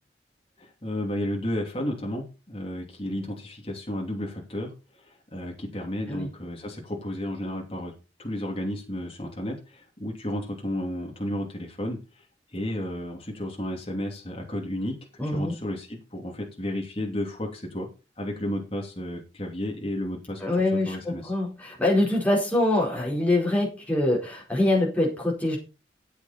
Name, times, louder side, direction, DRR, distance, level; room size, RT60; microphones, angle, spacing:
voice 1, 0.6-7.9 8.2-17.9 18.2-21.3, left 1 dB, 30° left, 0 dB, 2.9 m, -33 dB
voice 2, 15.2-15.5 20.4-25.6, left 1 dB, 10° left, -3 dB, 4.6 m, -24 dB
13.5 x 8.3 x 4.4 m, 0.31 s
head